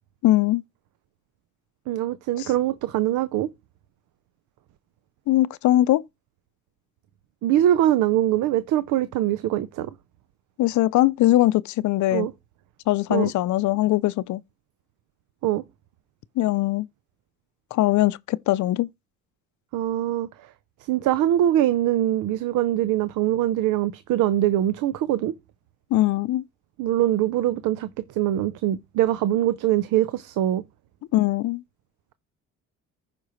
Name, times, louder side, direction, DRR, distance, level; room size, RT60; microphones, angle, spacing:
voice 1, 0.2-0.6 5.3-6.0 10.6-12.3 12.9-14.4 16.4-16.9 17.7-18.9 25.9-26.4 31.1-31.6, left 15 dB, 70° left, 0.5 m, -21 dB
voice 2, 1.9-3.5 7.4-9.9 12.1-12.3 13.1-13.3 15.4-15.6 19.7-20.5 20.9-25.3 26.8-30.6, right 12 dB, 90° right, 0.6 m, -23 dB
15.0 x 5.2 x 3.1 m
cardioid pair, 90°, 30 cm